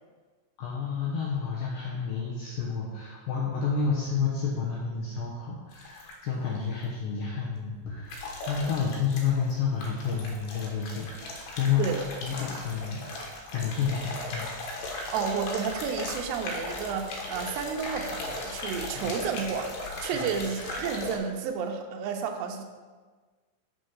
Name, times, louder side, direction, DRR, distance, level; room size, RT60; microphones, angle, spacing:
voice 1, 0.6-13.0 13.5-14.5 18.9-19.0 20.1-20.3, left 6 dB, 85° left, -4 dB, 2.0 m, -30 dB
sound 1, 5.7-6.3 8.1-9.5 9.8-21.2, left 2 dB, 70° left, 3.1 m, -37 dB
voice 2, 15.1-22.6, right 6 dB, 75° right, 3 dB, 2.7 m, -31 dB
6.8 x 6.3 x 6.3 m, 1.4 s
omnidirectional pair, 5.6 m